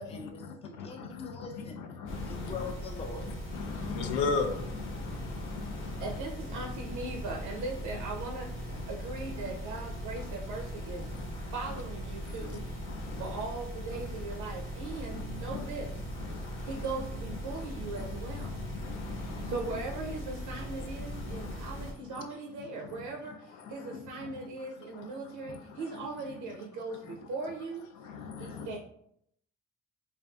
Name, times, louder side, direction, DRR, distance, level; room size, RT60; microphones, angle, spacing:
voice 1, 0.0-1.8 2.3-3.3, left 4 dB, 20° left, 2 dB, 0.5 m, -43 dB
voice 2, 0.8-1.3 2.0-2.6 3.5-6.0 12.9-13.2 15.1-15.2 16.3-16.5 18.8-19.5 21.3-21.5 28.1-28.7, left 4 dB, 75° left, 5 dB, 0.5 m, -36 dB
sound 1, 2.1-21.9, equal, 40° left, 0.8 m, -39 dB
voice 3, 6.0-11.1 11.5-12.6 13.2-16.1 16.6-18.6 19.4-27.9 28.4-28.8, right 3 dB, 80° right, 0 dB, 0.4 m, -39 dB
2.5 x 2.3 x 2.3 m, 0.73 s
cardioid pair, 90°, 30 cm